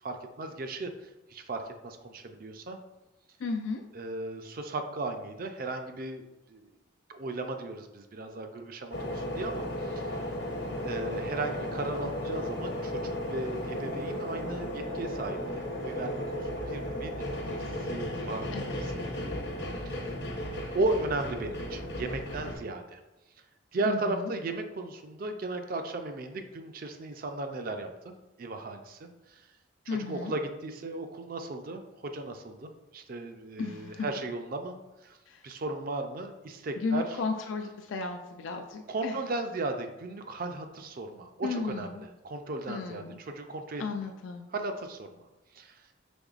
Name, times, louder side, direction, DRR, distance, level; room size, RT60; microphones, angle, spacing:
voice 1, 0.0-2.8 3.9-6.2 6.5-6.7 7.1-10.2 10.8-19.3 20.7-23.0 23.7-29.4 29.9-34.7 35.0-35.2 35.4-37.0 38.9-43.8 44.5-45.3 45.5-45.8, right 2 dB, 45° right, 6 dB, 0.4 m, -36 dB
voice 2, 3.4-3.8 18.5-18.8 23.9-24.3 29.9-30.3 33.6-34.1 35.3-35.4 36.8-39.2 41.4-42.0 42.7-43.2 43.8-44.5, left 4 dB, 75° left, 3 dB, 0.4 m, -34 dB
sound 1, 8.9-22.6, left 1 dB, 60° left, 0.8 m, -35 dB
5.2 x 3.8 x 2.4 m, 1.0 s
head